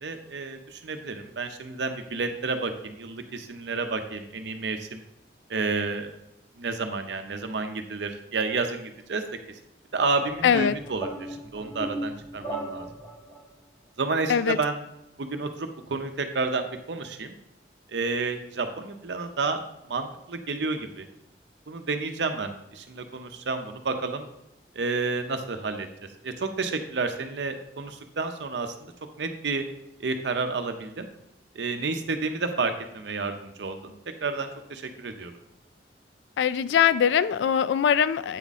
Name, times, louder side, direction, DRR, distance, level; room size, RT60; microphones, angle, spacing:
voice 1, 0.0-5.0 5.5-6.1 6.6-9.2 9.9-12.9 14.0-14.8 15.2-17.3 17.9-19.6 19.9-21.1 21.7-24.3 24.7-25.9 26.2-28.9 29.2-29.6 30.0-31.1 31.5-33.9 34.2-35.3, right 3 dB, 80° right, 7 dB, 0.7 m, -30 dB
sound 1, 10.0-13.4, right 1 dB, 20° left, 1.5 m, -37 dB
voice 2, 10.4-10.8 14.3-14.6 36.4-38.4, left 8 dB, 80° left, 15 dB, 0.3 m, -22 dB
8.3 x 4.1 x 3.6 m, 0.86 s
head